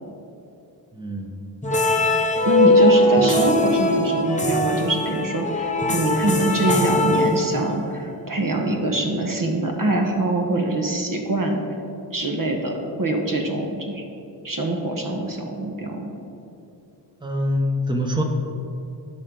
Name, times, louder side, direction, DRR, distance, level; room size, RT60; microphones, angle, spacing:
voice 1, 0.9-1.3 2.3-2.5 17.2-18.2, left 1 dB, 10° right, 1 dB, 1.0 m, -25 dB
sound 1, 1.6-7.9, left 1 dB, 15° left, 0.8 m, -20 dB
voice 2, 2.4-11.6 12.1-14.1 14.4-16.1, right 1 dB, 45° right, 2 dB, 1.1 m, -24 dB
10.5 x 5.5 x 3.8 m, 2.8 s
cardioid pair, 55°, 45 cm